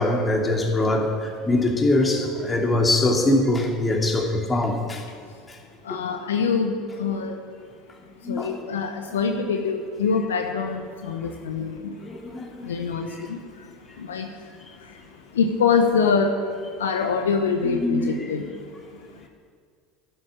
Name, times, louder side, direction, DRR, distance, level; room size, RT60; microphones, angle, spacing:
voice 1, 0.0-5.0 5.9-6.0 8.2-8.6 9.3-9.5 12.0-12.7 17.6-18.3, left 2 dB, 20° left, 2.9 m, -23 dB
voice 2, 5.9-7.4 8.3-11.9 12.6-13.4 14.1-14.3 15.4-16.3 16.8-18.4, left 5 dB, 80° left, 1.0 m, -24 dB
11.5 x 8.2 x 10.0 m
figure-of-eight pair, 70°, 0 cm